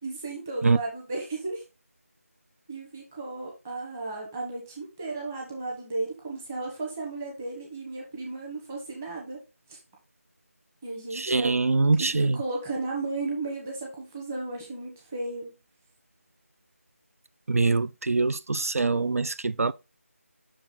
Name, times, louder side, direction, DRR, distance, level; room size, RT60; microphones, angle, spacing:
voice 1, 0.0-1.6 2.7-9.4 9.7-9.8 10.8-11.5 12.0-15.5, right 3 dB, 10° right, 1.1 m, -34 dB
voice 2, 11.1-12.4 17.5-19.7, right 3 dB, 75° right, 0.3 m, -24 dB
6.1 x 4.6 x 3.8 m
figure-of-eight pair, 170°, 8 cm